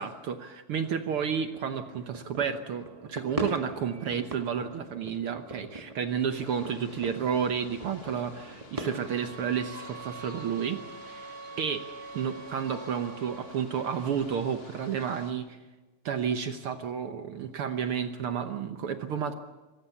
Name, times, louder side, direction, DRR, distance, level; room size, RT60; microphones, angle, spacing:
voice 1, 0.0-11.3 11.6-11.8 12.1-15.6 16.0-19.3, right 7 dB, 70° right, 8 dB, 1.3 m, -31 dB
sound 1, 1.5-9.3, right 1 dB, 25° right, 0.8 m, -41 dB
sound 2, 6.3-15.3, left 3 dB, 30° left, 2.4 m, -51 dB
sound 3, 8.9-13.7, right 5 dB, 50° right, 3.2 m, -45 dB
26.0 x 18.5 x 7.0 m, 1.2 s
omnidirectional pair, 3.8 m